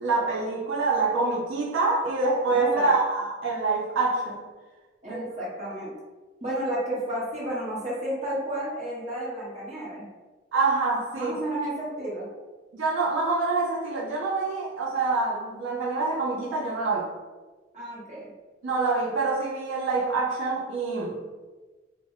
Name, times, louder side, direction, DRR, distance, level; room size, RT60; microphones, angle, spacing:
voice 1, 0.0-4.4 5.1-5.3 10.5-11.3 12.7-17.1 18.6-21.1, right 3 dB, 90° right, -3 dB, 0.5 m, -26 dB
voice 2, 2.5-3.0 5.0-5.9 6.4-10.1 11.1-12.3 17.7-18.3, right 1 dB, 40° right, -6 dB, 0.9 m, -32 dB
2.1 x 2.1 x 3.5 m, 1.3 s
head